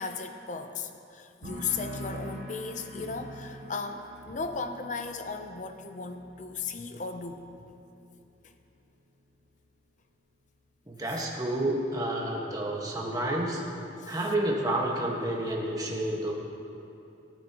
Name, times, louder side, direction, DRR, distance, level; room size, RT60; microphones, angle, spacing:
voice 1, 0.0-7.4 8.4-8.5 11.1-11.2 14.0-14.2, left 4 dB, 45° left, 7 dB, 0.7 m, -36 dB
sound 1, 1.4-8.9 9.2-9.7, equal, 80° right, 2.0 m, -45 dB
voice 2, 10.9-13.6 14.1-16.3, right 1 dB, 20° right, -2 dB, 1.5 m, -30 dB
18.0 x 9.6 x 3.0 m, 2.8 s
head